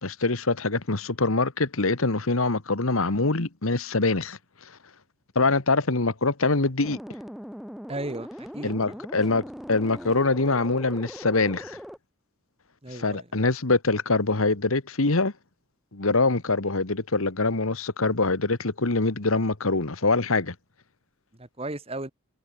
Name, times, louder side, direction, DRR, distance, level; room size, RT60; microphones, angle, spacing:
voice 1, 0.0-4.4 5.3-7.0 8.6-11.8 12.9-15.3 15.9-20.5, left 3 dB, 75° left, 1.6 m, -24 dB
sound 1, 6.8-12.0, equal, ahead, 2.1 m, -40 dB
voice 2, 7.9-8.3 8.5-9.0 12.8-13.2 21.4-22.1, right 2 dB, 25° right, 1.7 m, -35 dB
head